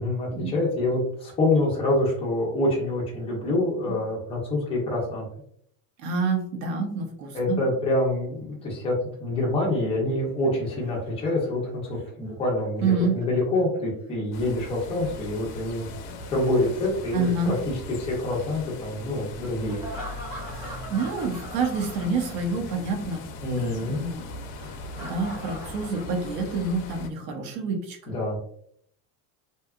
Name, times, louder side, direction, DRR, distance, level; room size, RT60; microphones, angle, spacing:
voice 1, 0.0-5.3 7.3-8.9 9.2-15.9 16.3-19.8 23.4-24.0 28.1-28.4, left 1 dB, 15° left, -3 dB, 0.4 m, -26 dB
voice 2, 6.0-7.6 12.8-13.1 17.1-17.5 20.5-23.2 23.5-24.3 24.6-24.7 25.0-28.0, right 3 dB, 50° right, 3 dB, 0.7 m, -28 dB
Laughter, 10.1-14.1 15.8-18.0 19.7-22.7 23.0-23.1 24.6-26.7, equal, 15° right, 1.0 m, -43 dB
sound 1, 14.3-27.1, left 2 dB, 70° left, 0.6 m, -40 dB
2.7 x 2.2 x 2.3 m, 0.66 s
cardioid pair, 170°, 44 cm